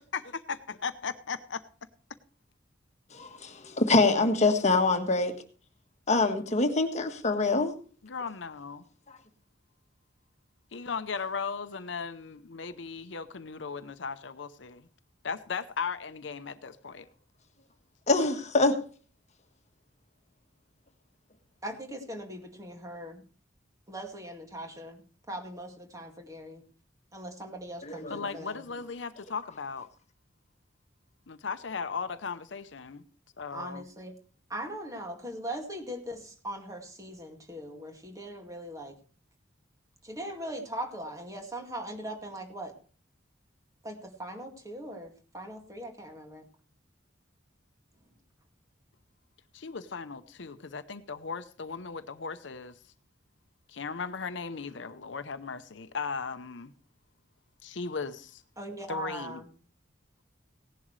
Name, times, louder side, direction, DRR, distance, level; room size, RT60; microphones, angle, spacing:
voice 1, 0.0-1.6 8.0-8.8 10.7-14.9 15.2-17.1 28.1-29.9 31.3-33.0 33.4-33.8 49.5-52.8 53.7-56.7 57.6-58.4 58.9-59.4, left 5 dB, 70° left, 0.8 m, -37 dB
voice 2, 3.1-5.3 6.1-7.7 9.1-9.2 18.1-18.7 27.8-28.2, left 3 dB, 40° left, 1.5 m, -25 dB
voice 3, 21.6-23.2 23.9-25.0 25.3-26.6 27.1-28.6 33.5-34.1 34.5-38.9 40.0-42.7 43.8-46.5 58.6-59.5, right 1 dB, 20° right, 2.2 m, -40 dB
17.0 x 11.0 x 3.2 m
head